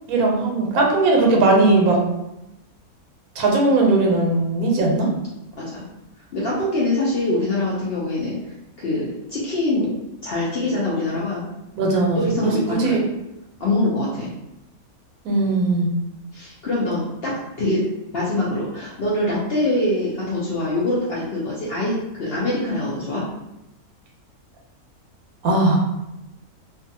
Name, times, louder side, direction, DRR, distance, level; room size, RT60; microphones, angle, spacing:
voice 1, 0.1-2.0 3.4-5.1 11.8-13.0 15.2-15.9 25.4-25.8, right 2 dB, 75° right, -1 dB, 1.1 m, -18 dB
voice 2, 6.3-8.4 8.8-9.9 10.2-11.5 12.2-12.9 13.6-14.3 16.3-17.9 18.1-23.2, left 1 dB, 60° left, -6 dB, 0.6 m, -24 dB
2.5 x 2.3 x 2.7 m, 0.90 s
omnidirectional pair, 1.6 m